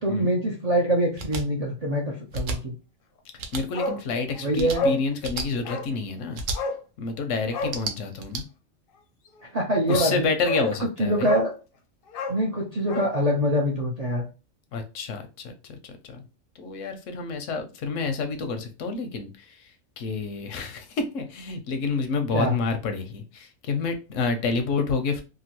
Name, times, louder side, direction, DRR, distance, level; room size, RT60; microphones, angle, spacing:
voice 1, 0.0-2.8 4.4-4.9 9.5-10.3 11.0-11.5 12.3-14.3 22.3-22.5, equal, 55° right, -2 dB, 0.4 m, -24 dB
sound 1, 1.2-1.4 2.3-2.6 3.4-3.6 4.5-4.8 5.2-5.5 6.3-6.6 7.6-8.4, right 3 dB, 80° right, 1.0 m, -31 dB
voice 2, 3.5-6.4 7.0-8.5 9.9-11.3 14.7-16.2 16.5-25.2, left 4 dB, 80° left, 6 dB, 1.0 m, -29 dB
Bark, 3.7-4.0 4.3-4.4 4.7-5.0 5.6-5.9 6.5-6.8 7.5-7.8 9.4-9.5 9.9-10.1 10.4-10.7 11.2-11.5 12.1-13.1 13.4-13.5, left 2 dB, 60° left, 0.6 m, -28 dB
2.9 x 2.3 x 2.9 m, 0.32 s
omnidirectional pair, 1.3 m